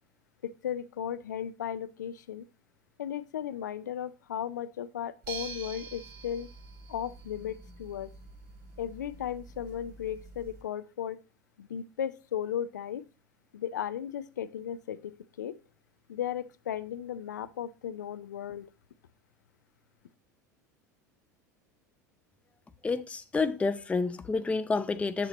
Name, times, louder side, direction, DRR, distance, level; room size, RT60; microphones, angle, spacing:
voice 1, 0.4-2.5 3.0-6.5 6.9-8.1 8.8-11.2 11.6-13.1 13.5-15.6 16.1-18.7, left 9 dB, 70° left, 0.5 m, -36 dB
sound 1, 5.2-10.6, right 5 dB, 45° right, 3.7 m, -46 dB
voice 2, 22.8-25.3, left 4 dB, 10° left, 0.5 m, -29 dB
7.7 x 6.8 x 2.9 m
figure-of-eight pair, 75°, 10 cm